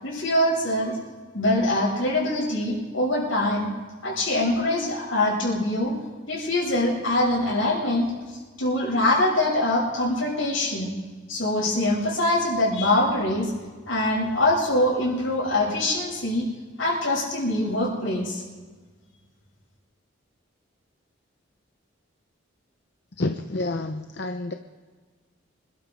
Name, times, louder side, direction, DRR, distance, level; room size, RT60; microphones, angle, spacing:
voice 1, 0.0-1.0 1.3-3.7 4.0-5.9 6.3-8.1 8.6-10.9 11.3-13.5 13.9-16.5 16.8-18.4, left 1 dB, 80° left, -3 dB, 6.3 m, -23 dB
voice 2, 23.2-24.5, left 2 dB, 55° left, 6 dB, 0.7 m, -29 dB
26.0 x 13.0 x 3.6 m, 1.4 s
head